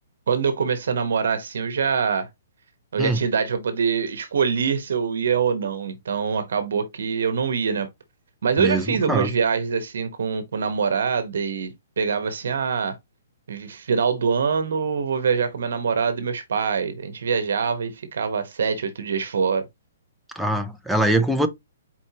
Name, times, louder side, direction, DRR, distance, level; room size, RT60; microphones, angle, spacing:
voice 1, 0.3-2.3 2.9-7.9 8.4-13.0 13.5-19.7, right 6 dB, 65° right, 1.0 m, -24 dB
voice 2, 20.4-21.5, right 1 dB, ahead, 0.5 m, -22 dB
4.4 x 4.3 x 2.8 m
hypercardioid pair, 170°, 0 cm